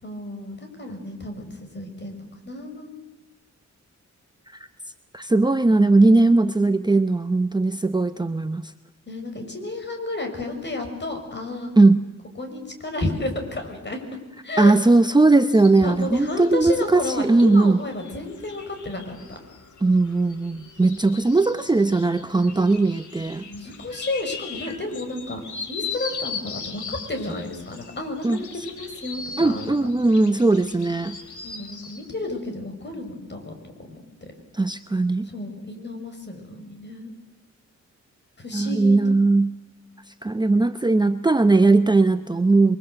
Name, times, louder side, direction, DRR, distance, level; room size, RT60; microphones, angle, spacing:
voice 1, 0.0-3.0 9.1-11.7 12.4-14.0 14.4-14.7 15.8-19.4 23.5-25.4 25.7-29.8 31.4-33.5 33.9-34.3 35.3-37.1 38.4-39.0, left 2 dB, 35° left, 5 dB, 6.2 m, -32 dB
voice 2, 5.1-8.7 11.8-12.0 14.6-17.8 19.8-23.4 28.2-28.4 29.4-31.2 34.5-35.3 38.5-39.5 40.2-42.8, right 3 dB, 15° right, 9 dB, 0.8 m, -19 dB
sound 1, 15.5-32.1, left 5 dB, 80° left, 3.3 m, -39 dB
29.5 x 23.0 x 7.9 m, 1.1 s
wide cardioid pair, 110°, 29 cm